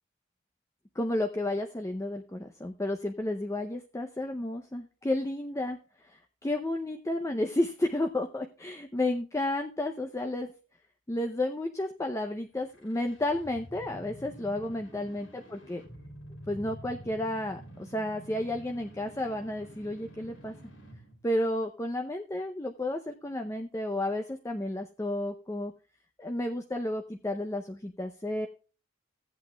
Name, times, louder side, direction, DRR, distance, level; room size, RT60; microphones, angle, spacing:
voice 1, 1.0-5.8 6.0-10.5 11.1-15.8 16.5-20.5 21.2-25.7 26.2-28.5, left 1 dB, 15° left, 4 dB, 0.5 m, -32 dB
sound 1, 12.6-21.2, right 1 dB, 70° left, 2.4 m, -48 dB
15.0 x 8.2 x 2.2 m, 0.35 s
head